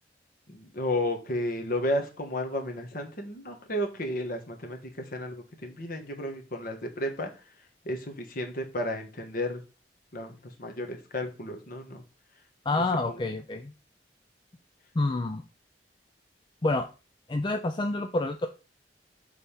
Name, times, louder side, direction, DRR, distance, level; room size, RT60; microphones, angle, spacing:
voice 1, 0.5-7.3 7.8-9.6 10.1-12.0 12.8-13.2, left 1 dB, 50° left, 4 dB, 1.5 m, -33 dB
voice 2, 12.7-13.7 15.0-15.4 16.6-16.9 17.3-18.5, left 2 dB, 25° left, 6 dB, 0.4 m, -28 dB
6.8 x 3.5 x 5.6 m, 0.33 s
head